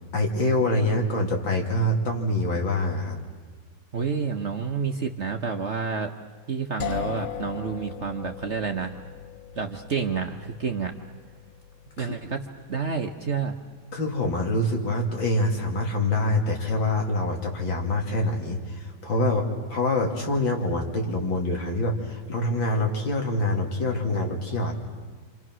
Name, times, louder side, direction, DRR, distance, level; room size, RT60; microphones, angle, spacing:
voice 1, 0.1-3.2 12.0-12.1 13.9-24.7, left 1 dB, 75° left, 1 dB, 3.4 m, -25 dB
voice 2, 3.9-6.1 6.5-8.9 9.5-10.9 12.0-12.4 12.7-13.6, right 5 dB, 45° right, 4 dB, 1.1 m, -29 dB
sound 1, 6.8-16.6, left 9 dB, 45° left, 1.0 m, -40 dB
28.5 x 26.5 x 6.2 m, 1.3 s
omnidirectional pair, 2.1 m